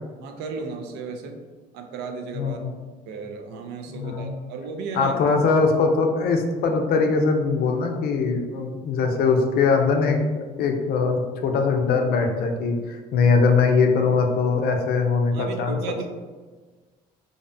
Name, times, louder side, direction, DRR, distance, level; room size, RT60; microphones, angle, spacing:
voice 1, 0.2-1.4 1.7-2.6 3.1-5.2 13.2-13.3 15.3-16.1, right 4 dB, 85° right, 5 dB, 0.4 m, -34 dB
voice 2, 2.4-2.7 3.9-4.3 5.0-15.8, left 4 dB, 65° left, 4 dB, 0.4 m, -21 dB
2.6 x 2.1 x 2.5 m, 1.4 s
cardioid pair, 110°, 17 cm